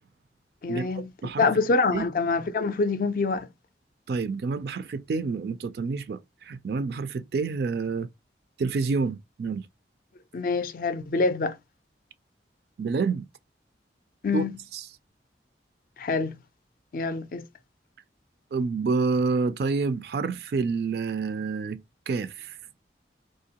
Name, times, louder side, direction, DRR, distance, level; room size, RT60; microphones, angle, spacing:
voice 1, 0.6-1.1 1.4-3.5 10.3-11.6 14.2-14.6 16.0-16.4 16.9-17.4, left 4 dB, 50° left, 0.4 m, -25 dB
voice 2, 4.1-8.1 8.6-9.7 12.8-13.2 14.3-14.4 14.7-14.8 18.5-21.8 22.1-22.6, right 4 dB, 60° right, 0.3 m, -28 dB
3.7 x 2.8 x 2.8 m
head